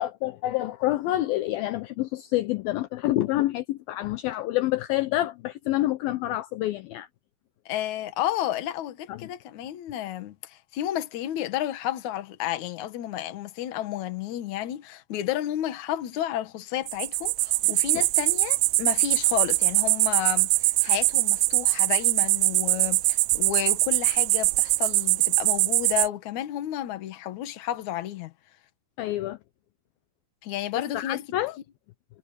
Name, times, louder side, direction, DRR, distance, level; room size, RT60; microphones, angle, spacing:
voice 1, 0.0-7.1 9.1-9.3 17.9-18.0 29.0-29.4 30.9-31.6, left 15 dB, 75° left, 2.3 m, -27 dB
voice 2, 7.7-28.3 30.4-31.2, left 12 dB, 60° left, 2.3 m, -31 dB
sound 1, 16.9-26.1, right 22 dB, 85° right, 2.6 m, -23 dB
omnidirectional pair, 4.7 m